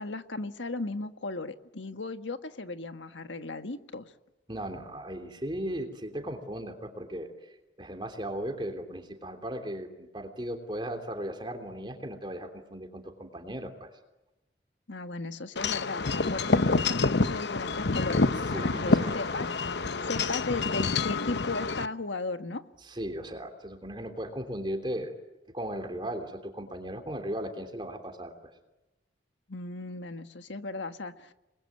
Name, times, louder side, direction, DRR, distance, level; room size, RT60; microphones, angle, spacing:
voice 1, 0.0-4.1 14.9-19.5 20.0-22.6 29.5-31.3, left 3 dB, 85° left, 8 dB, 1.6 m, -36 dB
voice 2, 4.5-13.9 18.5-19.1 22.8-25.1 25.5-28.3, right 1 dB, 25° right, 5 dB, 3.2 m, -37 dB
Wind chime / Wind, 15.6-21.9, left 3 dB, 70° left, 0.9 m, -27 dB
29.5 x 21.5 x 9.4 m, 1.0 s
head